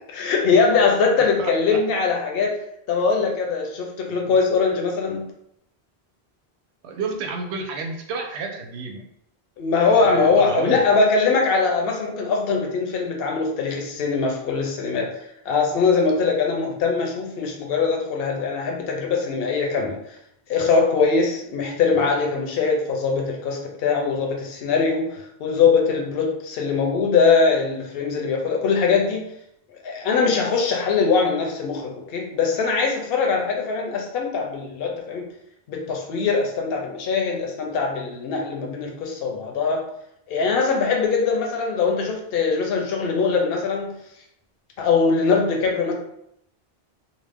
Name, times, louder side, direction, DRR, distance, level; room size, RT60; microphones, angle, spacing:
voice 1, 0.1-2.5 2.9-5.3 9.6-15.1 15.5-20.0 20.5-29.2 29.8-35.2 35.7-39.8 40.3-43.9 44.8-45.9, left 4 dB, 70° left, 1 dB, 0.8 m, -22 dB
voice 2, 1.4-1.8 6.8-9.0 9.9-10.8 14.9-15.1 21.9-22.1, right 4 dB, 85° right, 2 dB, 0.8 m, -30 dB
2.5 x 2.2 x 3.3 m, 0.75 s
omnidirectional pair, 1.1 m